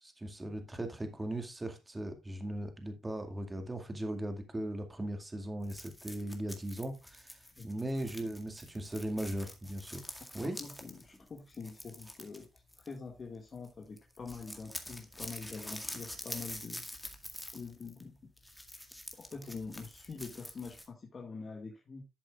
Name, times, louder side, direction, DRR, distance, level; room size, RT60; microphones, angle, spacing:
voice 1, 0.0-7.4 7.6-10.1 10.3-10.6, right 1 dB, 15° right, 2.2 m, -38 dB
sound 1, 5.6-13.3 13.5-13.7 14.0-20.9, left 1 dB, 5° left, 2.0 m, -47 dB
voice 2, 10.3-12.5 12.8-16.8 17.5-18.3 19.1-22.0, left 4 dB, 40° left, 1.9 m, -45 dB
11.5 x 7.6 x 2.4 m
cardioid pair, 90°, 0 cm